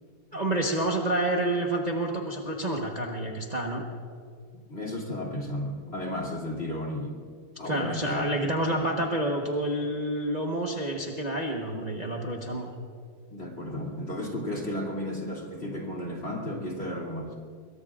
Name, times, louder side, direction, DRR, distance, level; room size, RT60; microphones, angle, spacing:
voice 1, 0.3-3.8 7.6-12.7, right 1 dB, 25° right, -1 dB, 1.2 m, -28 dB
voice 2, 4.5-7.1 7.6-9.0 13.3-17.3, left 1 dB, 35° left, -2 dB, 3.1 m, -34 dB
25.0 x 23.0 x 2.5 m, 2.1 s
omnidirectional pair, 1.8 m